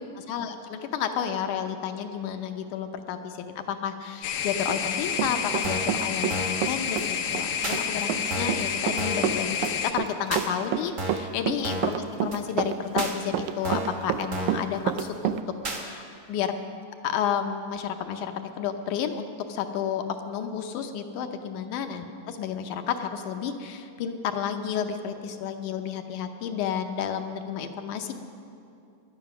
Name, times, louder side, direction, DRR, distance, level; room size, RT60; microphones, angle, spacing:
voice 1, 0.0-15.4 15.7-16.0 16.3-16.5 17.0-28.1, left 8 dB, 75° left, 6 dB, 2.1 m, -31 dB
sound 1, 4.2-9.9, left 8 dB, 90° left, 2.6 m, -29 dB
Run, 4.7-6.4 6.6-15.4, right 11 dB, 85° right, 1.7 m, -29 dB
sound 2, 5.6-6.0 6.3-6.6 7.0-7.1 7.6-7.8 8.3-8.6 9.0-9.3 9.6-9.7 10.3-10.5 11.0-11.3 11.6-12.0 12.3-12.4 13.0-13.1 13.6-14.0 14.3-14.6 15.0-15.1 15.6-15.8, right 2 dB, 50° right, 0.9 m, -32 dB
18.5 x 11.5 x 6.0 m, 2.6 s
omnidirectional pair, 3.9 m